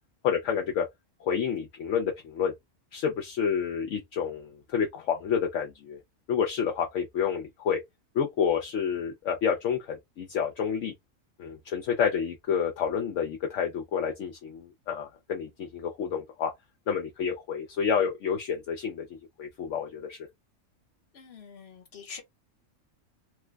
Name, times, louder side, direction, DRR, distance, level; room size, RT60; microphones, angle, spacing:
voice 1, 0.2-0.9 1.2-2.5 2.9-6.0 6.3-7.8 8.1-10.9 11.4-16.5 16.9-19.1 19.4-20.2, left 7 dB, 75° left, 0.9 m, -29 dB
voice 2, 21.1-22.2, left 6 dB, 55° left, 1.2 m, -45 dB
3.1 x 2.1 x 3.3 m
omnidirectional pair, 1.3 m